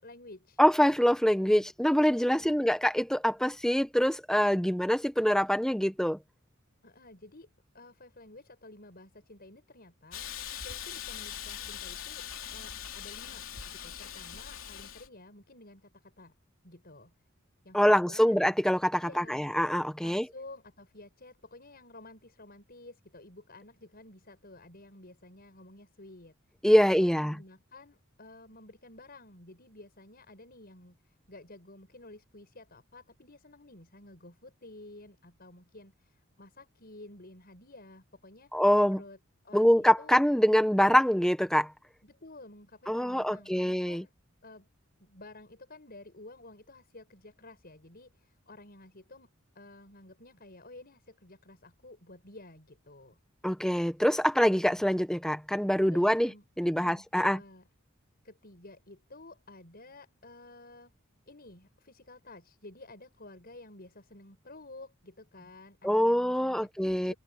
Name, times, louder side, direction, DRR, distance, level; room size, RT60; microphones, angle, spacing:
voice 1, 0.0-0.6 2.3-2.7 6.8-7.5 7.7-10.3 10.6-12.3 12.5-16.3 16.6-17.1 17.6-18.4 19.0-19.5 20.0-26.3 26.8-39.2 39.4-40.2 42.0-44.1 44.4-44.7 45.0-53.2 55.9-56.5 56.7-57.6 58.2-60.9 61.3-67.2, left 2 dB, 45° left, 7.1 m, -52 dB
voice 2, 0.6-6.2 17.7-20.3 26.6-27.3 38.5-39.0 39.5-41.7 42.9-44.0 53.4-56.3 56.6-57.4 65.8-67.1, equal, 5° left, 1.1 m, -25 dB
Hiss, 10.1-15.1, left 9 dB, 75° left, 3.4 m, -41 dB
head